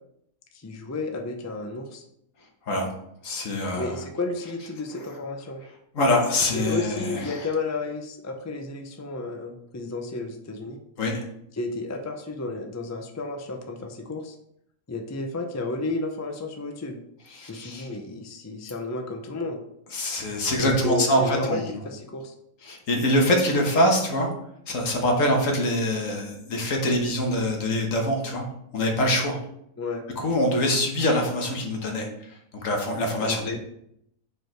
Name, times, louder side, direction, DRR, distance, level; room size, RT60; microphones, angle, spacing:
voice 1, 0.5-2.0 3.7-5.6 6.5-10.8 11.5-14.4 14.9-17.0 17.4-19.6 20.6-22.3 29.8-30.0 33.2-33.6, left 3 dB, 25° left, 4 dB, 0.3 m, -32 dB
voice 2, 3.2-4.0 5.9-7.4 11.0-11.2 17.3-17.9 19.9-21.7 22.6-24.3 24.7-28.4 28.7-29.4 30.2-32.1 32.6-33.6, left 1 dB, 70° left, 1 dB, 1.6 m, -24 dB
5.1 x 4.7 x 4.5 m, 0.75 s
omnidirectional pair, 1.5 m